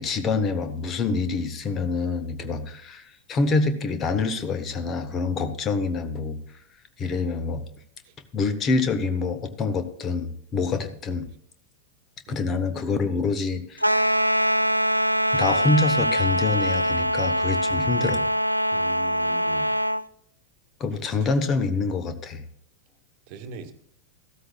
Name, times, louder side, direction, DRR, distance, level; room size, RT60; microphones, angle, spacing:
voice 1, 0.0-6.4 7.0-7.7 8.3-11.2 12.3-14.2 15.3-18.3 20.8-22.4, left 4 dB, 30° left, 10 dB, 1.2 m, -26 dB
sound 1, 13.8-20.0, equal, 90° right, 0.3 m, -23 dB
voice 2, 18.7-19.7 21.0-21.3 23.3-23.7, right 5 dB, 45° right, 9 dB, 1.4 m, -42 dB
14.5 x 13.0 x 2.4 m, 0.69 s
figure-of-eight pair, 90°, 0 cm